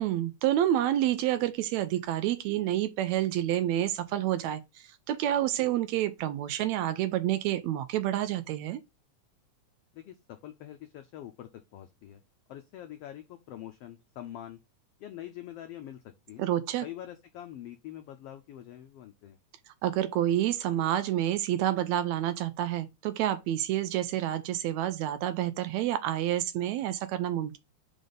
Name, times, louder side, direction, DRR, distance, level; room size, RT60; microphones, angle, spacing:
voice 1, 0.0-8.8 16.4-16.9 19.8-27.6, right 12 dB, 80° right, 1.8 m, -28 dB
voice 2, 9.9-12.2 12.5-14.6 15.0-16.5 16.8-19.4, left 12 dB, 90° left, 1.3 m, -44 dB
5.1 x 3.9 x 5.0 m
omnidirectional pair, 3.4 m